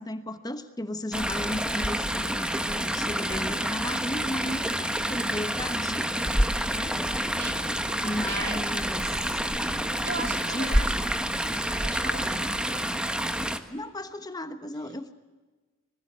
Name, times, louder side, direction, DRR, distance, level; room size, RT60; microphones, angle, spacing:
voice 1, 0.0-6.1 6.7-7.2 8.0-9.5 10.5-10.8 13.7-15.1, left 1 dB, 20° left, 9 dB, 1.1 m, -35 dB
Chatter / Stream, 1.1-13.6, equal, 5° right, 1.4 m, -28 dB
voice 2, 7.3-7.6 8.0-8.6 10.0-11.0 11.8-12.3, right 4 dB, 55° right, 5 dB, 3.6 m, -37 dB
26.5 x 21.0 x 8.6 m, 1.3 s
head